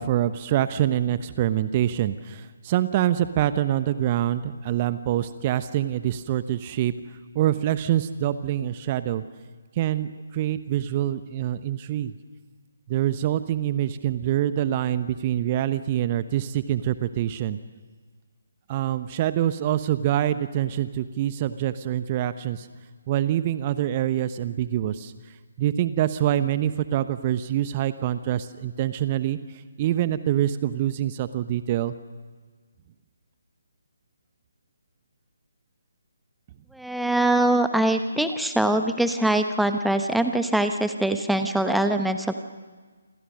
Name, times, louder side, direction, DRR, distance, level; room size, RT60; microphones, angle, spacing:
voice 1, 0.0-6.9 7.3-9.2 9.8-12.1 12.9-17.6 18.7-22.7 23.1-25.1 25.6-29.4 29.8-31.9, right 12 dB, 30° right, 12 dB, 1.0 m, -25 dB
voice 2, 36.7-42.3, right 1 dB, ahead, 7 dB, 1.1 m, -23 dB
27.5 x 27.5 x 6.5 m, 1.5 s
figure-of-eight pair, 145°, 0 cm